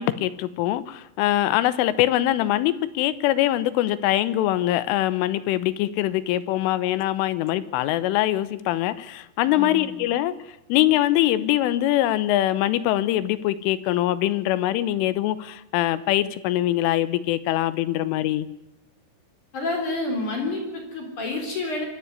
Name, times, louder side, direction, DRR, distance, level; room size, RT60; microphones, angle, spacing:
voice 1, 0.0-18.5, left 14 dB, 80° left, 15 dB, 3.4 m, -23 dB
voice 2, 9.5-10.0 19.5-21.8, left 2 dB, 40° left, 2 dB, 5.0 m, -29 dB
23.5 x 14.0 x 9.7 m, 0.92 s
omnidirectional pair, 5.7 m